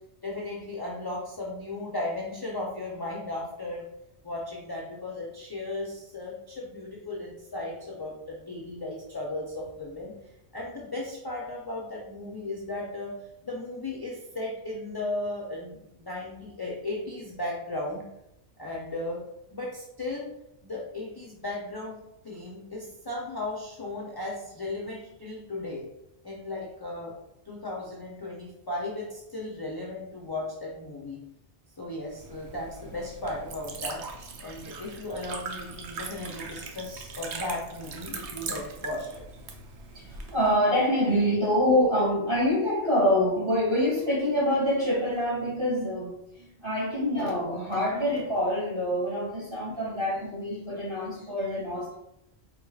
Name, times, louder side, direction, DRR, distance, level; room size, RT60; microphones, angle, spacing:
voice 1, 0.2-3.8 4.2-10.1 10.5-13.1 13.4-18.0 18.6-19.2 19.5-20.3 20.6-22.0 22.2-25.8 26.2-27.1 27.5-31.2 31.8-34.0 34.4-39.2, left 2 dB, 25° left, -3 dB, 0.5 m, -36 dB
Liquid, 32.0-40.6, right 4 dB, 80° right, 0.9 m, -40 dB
voice 2, 39.9-52.0, equal, 25° right, -6 dB, 1.8 m, -26 dB
4.6 x 3.9 x 2.4 m, 0.81 s
omnidirectional pair, 1.2 m